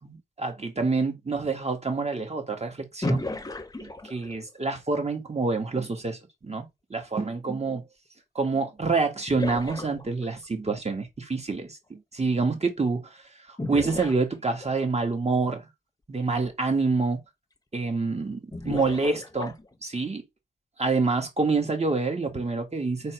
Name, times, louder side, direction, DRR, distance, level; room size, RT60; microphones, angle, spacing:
voice 1, 0.0-3.4 3.8-6.6 6.9-7.8 8.4-13.1 13.7-15.7 16.1-17.2 17.7-18.4 18.7-19.5 19.8-20.2 20.8-23.1, right 4 dB, 35° right, 2.0 m, -27 dB
sound 1, 3.0-4.5 8.4-8.5 9.3-10.4 13.6-14.9 16.2-16.3 16.7-16.8 18.5-19.8, left 1 dB, 20° left, 1.0 m, -33 dB
5.1 x 4.1 x 4.6 m
cardioid pair, 75°, 19 cm